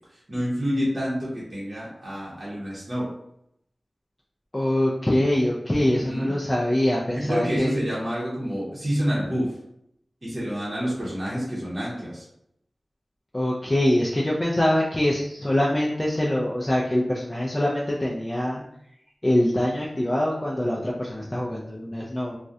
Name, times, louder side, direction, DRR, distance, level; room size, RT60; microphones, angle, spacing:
voice 1, 0.3-3.1 5.8-6.4 7.1-9.5 10.2-12.2, equal, 40° right, -8 dB, 0.7 m, -28 dB
voice 2, 4.5-7.7 13.3-18.6 19.2-22.4, left 1 dB, 20° left, -4 dB, 0.3 m, -24 dB
2.3 x 2.1 x 2.6 m, 0.75 s
wide cardioid pair, 95°, 0 cm